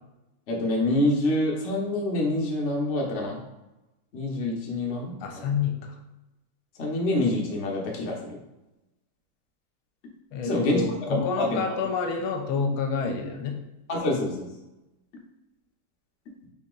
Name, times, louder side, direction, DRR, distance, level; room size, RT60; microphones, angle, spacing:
voice 1, 0.5-3.4 4.1-5.5 6.8-8.4 10.4-10.8 11.1-11.6 13.9-14.5, left 1 dB, 55° left, -1 dB, 0.8 m, -26 dB
voice 2, 5.2-6.0 10.3-13.6, left 5 dB, 80° left, 3 dB, 1.4 m, -28 dB
3.9 x 2.9 x 3.8 m, 0.98 s
omnidirectional pair, 2.3 m